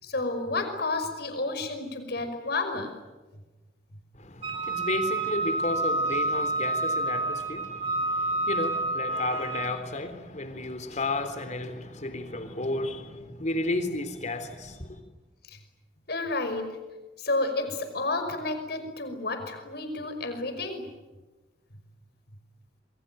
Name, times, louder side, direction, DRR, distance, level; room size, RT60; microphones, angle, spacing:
voice 1, 0.0-2.9 15.5-15.6 16.1-16.7 17.2-20.8, left 2 dB, 65° left, 7 dB, 5.5 m, -31 dB
voice 2, 4.2-15.0, left 2 dB, 40° left, 9 dB, 3.6 m, -33 dB
Wind instrument woodwind instrument, 4.4-9.8, right 2 dB, 35° right, 7.2 m, -29 dB
27.5 x 23.5 x 9.3 m, 1.2 s
head